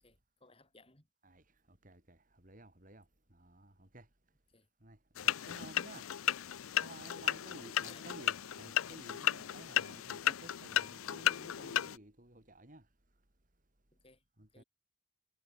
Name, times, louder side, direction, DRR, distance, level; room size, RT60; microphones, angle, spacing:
voice 1, 0.0-1.1 4.5-4.7 7.2-7.3 7.6-8.2 13.9-14.2 14.5-14.6, left 2 dB, 25° left, 5.3 m, -62 dB
voice 2, 1.2-4.4 4.8-14.0 14.4-14.6, right 1 dB, 40° right, 3.3 m, -55 dB
sound 1, 5.2-12.0, left 11 dB, 90° left, 0.5 m, -34 dB
head